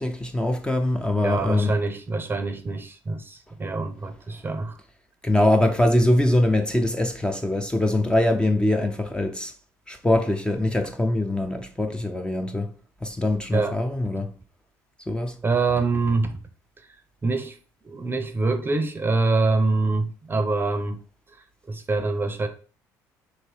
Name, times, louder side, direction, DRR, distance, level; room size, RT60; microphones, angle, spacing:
voice 1, 0.0-1.7 5.2-9.5 9.9-12.7 13.0-14.3 15.1-15.4, left 1 dB, 10° left, 0.6 m, -23 dB
voice 2, 1.2-4.8 13.5-13.8 15.4-16.4 17.2-17.6 17.8-21.0 21.7-22.5, right 3 dB, 25° right, 0.7 m, -25 dB
3.1 x 3.0 x 4.5 m
hypercardioid pair, 60°, 9 cm